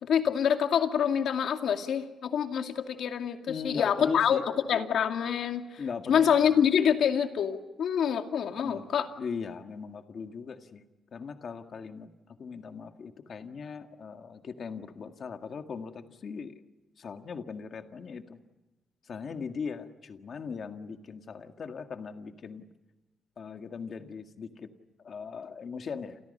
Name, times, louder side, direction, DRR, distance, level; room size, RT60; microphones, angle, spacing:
voice 1, 0.0-4.4 4.7-5.8 6.1-9.1, left 8 dB, 65° left, 5 dB, 2.4 m, -26 dB
voice 2, 3.5-4.5 5.8-6.6 8.6-8.9 9.2-10.8 11.1-16.5 17.0-18.4 19.0-22.7 23.4-24.7 25.0-26.2, left 5 dB, 40° left, 6 dB, 1.8 m, -39 dB
29.5 x 29.0 x 5.5 m, 1.0 s
wide cardioid pair, 175°, 0 cm